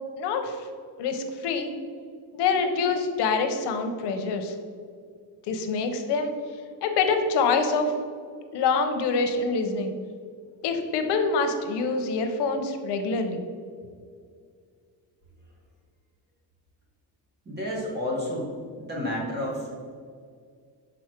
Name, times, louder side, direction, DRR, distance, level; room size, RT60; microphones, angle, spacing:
voice 1, 0.2-0.6 1.0-1.7 2.3-4.5 5.5-6.3 6.8-7.9 8.5-9.9 10.6-13.4, left 4 dB, 85° left, 6 dB, 0.8 m, -25 dB
voice 2, 17.4-18.5 18.8-19.8, left 1 dB, 25° right, -3 dB, 1.4 m, -30 dB
6.3 x 3.9 x 4.4 m, 2.1 s
cardioid pair, 165°, 40 cm